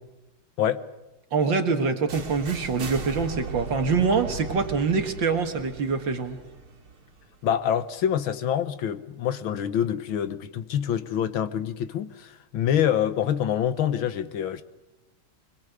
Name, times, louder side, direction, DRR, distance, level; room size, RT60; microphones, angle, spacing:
voice 1, 1.3-6.4, right 5 dB, 65° right, 2.3 m, -25 dB
sound 1, 2.1-7.9, right 3 dB, 80° right, 3.0 m, -38 dB
voice 2, 7.4-14.6, left 9 dB, 75° left, 1.9 m, -26 dB
24.5 x 22.0 x 8.2 m
omnidirectional pair, 2.3 m